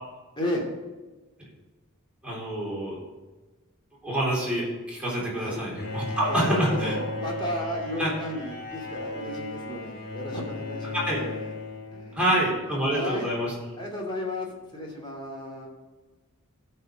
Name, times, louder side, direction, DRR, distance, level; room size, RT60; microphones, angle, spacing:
voice 1, 2.2-3.0 4.0-7.0 8.0-8.1 10.9-11.2 12.2-13.5, right 1 dB, 5° right, -6 dB, 3.7 m, -27 dB
Bowed string instrument, 5.8-12.5, left 2 dB, 50° left, 2.2 m, -35 dB
voice 2, 6.3-11.5 11.9-12.3 12.9-13.3 13.8-15.7, left 1 dB, 25° left, -1 dB, 2.7 m, -34 dB
16.0 x 5.6 x 5.2 m, 1.2 s
head